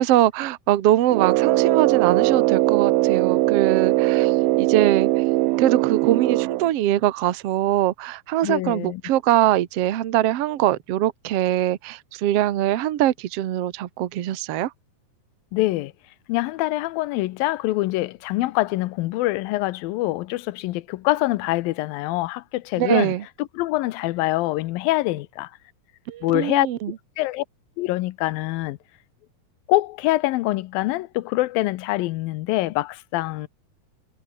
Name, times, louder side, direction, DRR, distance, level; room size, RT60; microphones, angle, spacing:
voice 1, 0.0-5.2 5.6-14.7 22.8-23.2 26.1-26.9, right 13 dB, 65° right, 1.6 m, -22 dB
Brass instrument, 1.1-6.7, right 20 dB, 85° right, 2.4 m, -20 dB
voice 2, 8.4-9.0 15.5-15.9 16.3-23.1 23.4-25.5 26.2-26.7 27.2-27.4 27.8-28.8 29.7-33.5, left 18 dB, 75° left, 2.4 m, -24 dB
omnidirectional pair, 4.3 m